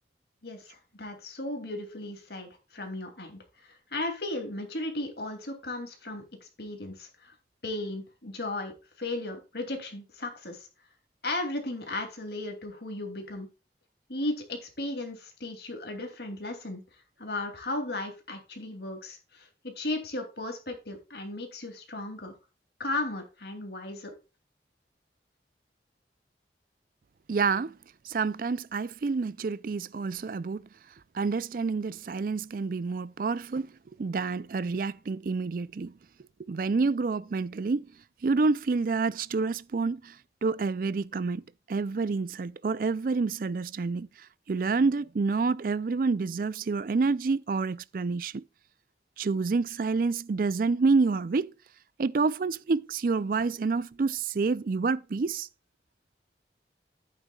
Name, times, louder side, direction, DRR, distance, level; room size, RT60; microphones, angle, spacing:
voice 1, 0.4-7.3 7.6-8.7 9.0-10.7 11.2-13.5 14.1-16.8 17.2-22.3 22.8-24.1, left 2 dB, 65° left, 2.7 m, -35 dB
voice 2, 27.3-27.8 28.0-30.7 31.1-33.7 34.0-36.0 36.4-37.9 38.2-48.4 49.2-51.5 52.0-55.5, right 4 dB, 50° right, 0.4 m, -28 dB
11.0 x 9.1 x 2.3 m
head